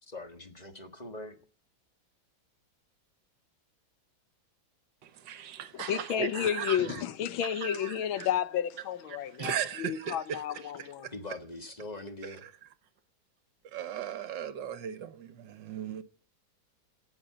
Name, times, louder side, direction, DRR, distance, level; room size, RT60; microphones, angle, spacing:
voice 1, 0.0-1.4 11.1-12.4, left 2 dB, 20° left, 1.5 m, -42 dB
voice 2, 5.0-7.0 7.5-8.3 9.1-11.1 12.2-12.5 13.7-16.0, right 9 dB, 65° right, 1.5 m, -38 dB
voice 3, 5.7-11.1, left 9 dB, 80° left, 1.7 m, -31 dB
17.5 x 7.2 x 7.9 m
omnidirectional pair, 2.2 m